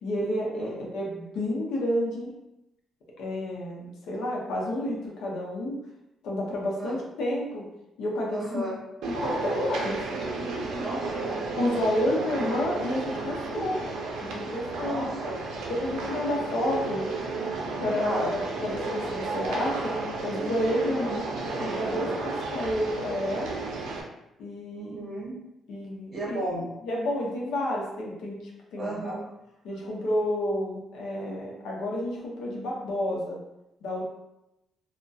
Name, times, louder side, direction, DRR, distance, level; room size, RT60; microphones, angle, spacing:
voice 1, 0.0-2.4 3.2-5.8 6.2-7.7 8.0-8.6 9.0-10.0 11.5-13.9 14.2-15.3 15.7-17.1 17.8-21.1 21.4-23.6 24.4-24.9 25.7-26.4 26.8-29.2 29.6-33.4 33.8-34.1, left 1 dB, 80° left, -2 dB, 0.6 m, -30 dB
voice 2, 8.3-8.8 10.8-11.3 12.1-12.3 14.8-15.4 18.0-18.3 20.8-21.3 24.7-25.4 26.1-26.7 28.8-29.2, right 2 dB, 30° right, -5 dB, 1.0 m, -34 dB
sound 1, 9.0-24.0, right 3 dB, 85° right, 0.4 m, -32 dB
2.3 x 2.1 x 2.6 m, 0.88 s
cardioid pair, 90°, 0 cm